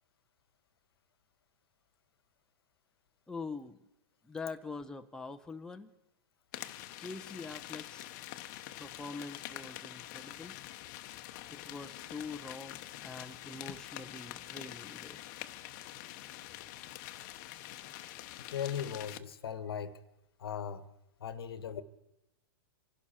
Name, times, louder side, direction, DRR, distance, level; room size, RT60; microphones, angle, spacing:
voice 1, 3.3-3.8 4.2-5.9 7.0-8.1 8.8-10.6 11.5-15.2, left 4 dB, 5° left, 0.7 m, -44 dB
sound 1, 6.5-19.2, left 15 dB, 50° left, 0.9 m, -46 dB
voice 2, 18.4-20.0 20.4-20.9 21.2-21.8, left 8 dB, 80° left, 1.3 m, -38 dB
26.5 x 12.0 x 4.4 m
hypercardioid pair, 125°, 13 cm